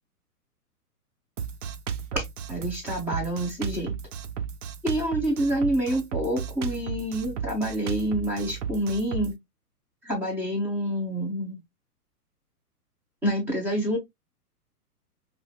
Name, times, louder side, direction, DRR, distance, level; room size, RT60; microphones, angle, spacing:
Drum kit, 1.4-9.3, right 7 dB, 50° right, 0.7 m, -34 dB
voice 1, 2.5-4.0 4.8-9.3 10.0-11.6 13.2-14.0, equal, 5° right, 0.4 m, -27 dB
4.9 x 2.4 x 2.2 m
figure-of-eight pair, 115°, 47 cm